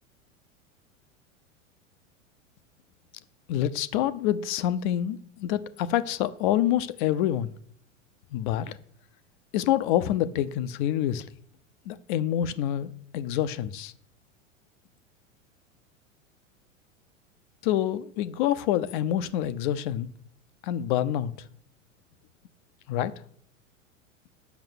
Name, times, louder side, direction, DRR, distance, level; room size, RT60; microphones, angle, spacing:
voice 1, 3.5-7.5 8.3-8.8 9.5-11.3 11.9-13.9 17.6-20.1 20.6-21.5 22.9-23.1, left 11 dB, 40° left, 0.6 m, -27 dB
8.1 x 6.4 x 8.0 m
figure-of-eight pair, 90°, 39 cm